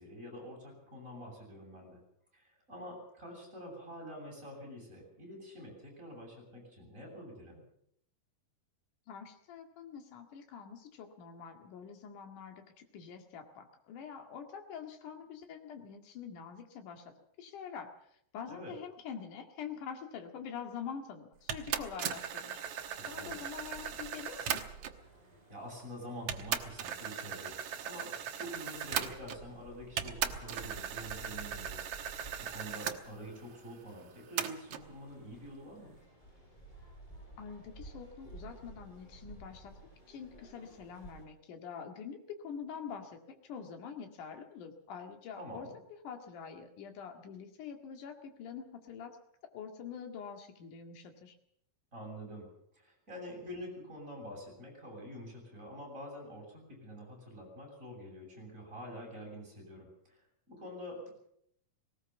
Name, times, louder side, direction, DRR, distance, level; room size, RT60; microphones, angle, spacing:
voice 1, 0.0-2.0 2.3-7.6 18.4-18.7 23.0-23.5 25.5-36.0 45.3-45.7 51.9-52.5 52.7-60.2 60.5-61.1, equal, 20° right, -1 dB, 8.4 m, -47 dB
voice 2, 9.1-17.9 18.3-22.6 23.1-24.6 37.4-39.7 40.1-45.7 46.0-49.2 49.5-51.4, left 7 dB, 70° left, 4 dB, 3.5 m, -45 dB
sound 1, 21.5-25.1 25.8-25.9 26.3-29.6 30.0-33.0 34.4-34.9, right 9 dB, 60° right, 1.9 m, -38 dB
sound 2, 22.5-41.2, right 2 dB, 10° left, 6.5 m, -54 dB
19.0 x 19.0 x 7.2 m, 0.71 s
omnidirectional pair, 3.8 m